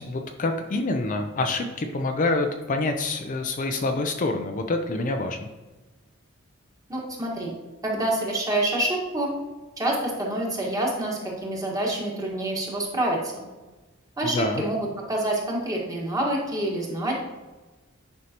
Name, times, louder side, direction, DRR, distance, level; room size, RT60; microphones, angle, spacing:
voice 1, 0.0-5.5 14.3-14.6, left 2 dB, 40° left, 5 dB, 0.5 m, -26 dB
voice 2, 6.9-7.5 7.8-9.3 9.8-13.4 14.2-17.1, right 1 dB, 15° right, -2 dB, 1.6 m, -27 dB
9.5 x 5.5 x 2.9 m, 1.2 s
head